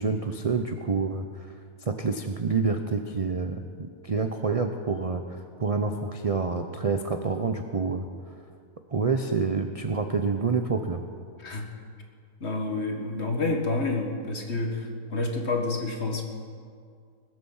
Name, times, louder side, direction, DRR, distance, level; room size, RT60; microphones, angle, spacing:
voice 1, 0.0-1.5 1.9-8.1 8.9-11.0, right 4 dB, 45° right, 6 dB, 0.4 m, -28 dB
voice 2, 12.4-16.2, left 3 dB, 45° left, 3 dB, 1.8 m, -29 dB
21.0 x 8.0 x 7.2 m, 2.2 s
omnidirectional pair, 1.6 m